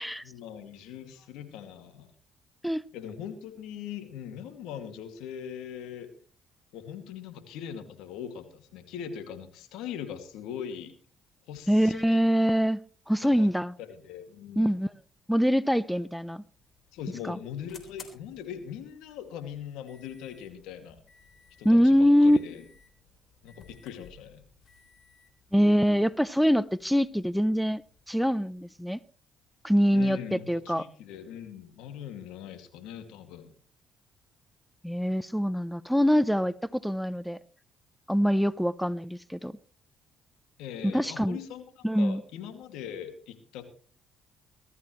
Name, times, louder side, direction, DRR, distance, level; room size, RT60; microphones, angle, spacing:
voice 1, 0.2-2.1 2.9-6.1 6.7-10.9 11.5-12.3 13.2-13.5 13.8-14.7 16.9-21.0 21.6-22.6 23.4-24.4 29.9-33.5 40.6-43.7, left 8 dB, 80° left, 8 dB, 2.4 m, -41 dB
voice 2, 11.7-12.8 13.1-13.7 14.6-14.9 15.3-16.4 17.2-17.4 21.6-22.4 25.5-27.8 28.1-29.0 29.6-30.8 34.8-37.4 38.1-39.5 40.8-41.4 41.8-42.2, equal, ahead, 19 dB, 0.7 m, -24 dB
sound 1, 16.5-28.9, left 5 dB, 50° left, 3.6 m, -58 dB
22.0 x 13.5 x 3.2 m, 0.40 s
supercardioid pair, 65°, 0 cm